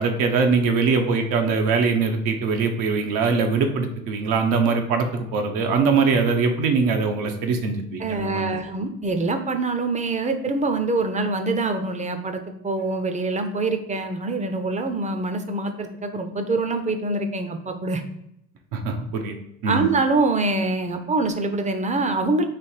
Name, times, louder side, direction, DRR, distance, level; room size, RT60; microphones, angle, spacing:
voice 1, 0.0-8.6 18.7-19.4 19.6-19.8, right 4 dB, 75° right, 4 dB, 0.8 m, -22 dB
voice 2, 8.0-18.0 19.7-22.4, right 3 dB, 20° right, 7 dB, 0.6 m, -25 dB
3.3 x 3.1 x 4.3 m, 0.78 s
supercardioid pair, 75°, 34 cm